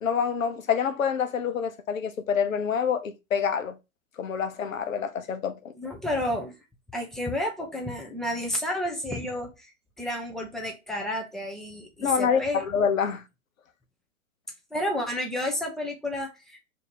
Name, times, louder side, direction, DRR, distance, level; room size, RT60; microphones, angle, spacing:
voice 1, 0.0-3.8 4.2-5.6 12.0-13.2, left 7 dB, 85° left, 0.7 m, -26 dB
voice 2, 5.8-6.6 6.9-12.6 14.7-16.7, left 1 dB, ahead, 0.4 m, -31 dB
2.8 x 2.7 x 4.1 m
hypercardioid pair, 115°, 39 cm